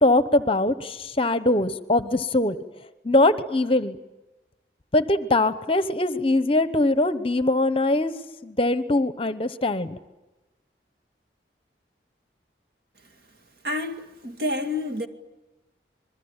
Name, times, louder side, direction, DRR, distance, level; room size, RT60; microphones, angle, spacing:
voice 1, 0.0-2.6 3.0-4.0 4.9-8.1 8.4-10.0, left 2 dB, 30° left, 1.0 m, -22 dB
voice 2, 13.6-15.1, left 2 dB, 60° right, 2.3 m, -29 dB
27.5 x 22.0 x 9.0 m
head